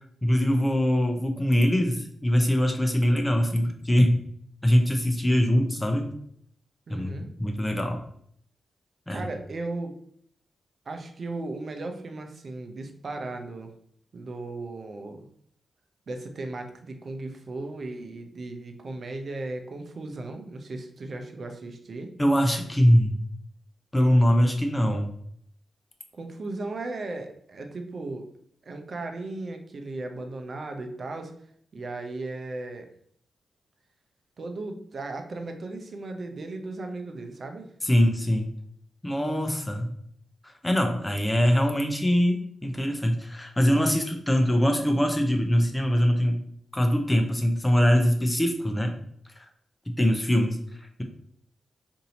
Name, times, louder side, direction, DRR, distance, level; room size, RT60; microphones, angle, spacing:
voice 1, 0.2-4.2 4.6-6.1 6.9-7.1 7.4-8.0 9.1-9.3 22.2-23.2 23.9-25.1 37.8-38.5 39.0-39.9 40.4-46.4 46.7-49.0 49.4-49.5 49.9-50.6, equal, 15° left, 4 dB, 0.6 m, -23 dB
voice 2, 6.9-7.3 9.1-10.0 10.9-13.7 14.1-15.2 16.1-22.1 26.1-28.3 28.6-31.3 31.7-32.9 34.4-37.7, right 2 dB, 60° right, 5 dB, 0.6 m, -36 dB
2.7 x 2.7 x 4.0 m, 0.66 s
supercardioid pair, 45°, 0 cm